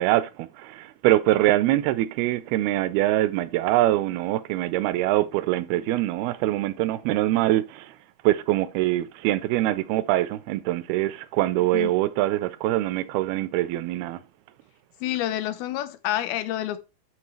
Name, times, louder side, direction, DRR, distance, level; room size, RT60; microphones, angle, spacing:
voice 1, 0.0-8.0 8.2-14.2, right 15 dB, 85° right, 2.6 m, -24 dB
voice 2, 15.0-16.8, left 13 dB, 80° left, 2.7 m, -28 dB
12.0 x 4.6 x 3.1 m
omnidirectional pair, 4.4 m